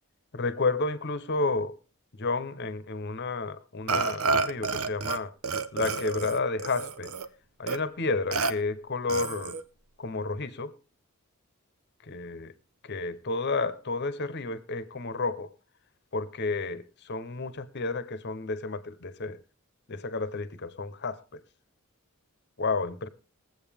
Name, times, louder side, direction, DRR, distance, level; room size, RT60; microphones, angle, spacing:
voice 1, 0.3-1.8 2.1-5.3 5.7-7.1 7.6-9.6 10.0-10.7 12.0-12.5 12.8-15.5 16.1-19.4 19.9-21.4 22.6-23.1, left 3 dB, 50° left, 0.9 m, -31 dB
Burping eructation, 3.9-5.2 5.4-7.3 7.7-7.8 8.3-8.5 9.1-9.6, right 4 dB, 80° right, 0.8 m, -29 dB
21.0 x 7.9 x 3.5 m
head